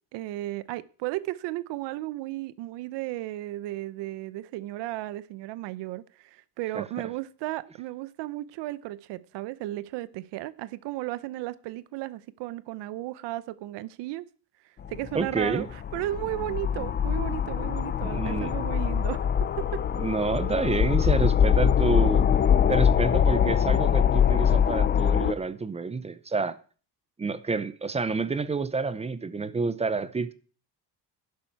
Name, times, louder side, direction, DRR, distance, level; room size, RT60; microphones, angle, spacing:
voice 1, 0.1-14.3 14.6-19.3 19.6-19.8, right 16 dB, 90° right, 0.8 m, -34 dB
sound 1, 14.8-25.3, left 8 dB, 25° left, 0.5 m, -23 dB
voice 2, 15.1-15.7 18.0-18.5 20.0-22.3 22.7-26.6 27.2-30.3, right 4 dB, 15° right, 0.6 m, -29 dB
11.5 x 11.5 x 4.6 m
cardioid pair, 150°, 41 cm